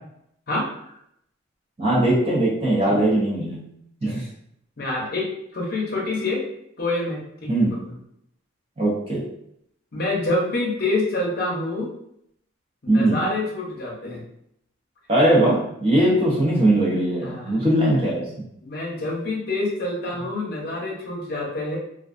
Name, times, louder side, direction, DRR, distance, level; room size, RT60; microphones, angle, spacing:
voice 1, 1.8-3.7 4.0-4.3 7.5-7.7 8.8-9.2 12.9-13.3 15.1-18.3, right 1 dB, 25° right, -5 dB, 0.6 m, -20 dB
voice 2, 4.8-5.3 5.5-6.4 6.8-7.9 9.9-11.9 12.8-14.2 17.2-17.6 18.6-21.8, left 2 dB, 50° left, -2 dB, 0.6 m, -27 dB
2.3 x 2.2 x 2.5 m, 0.75 s
head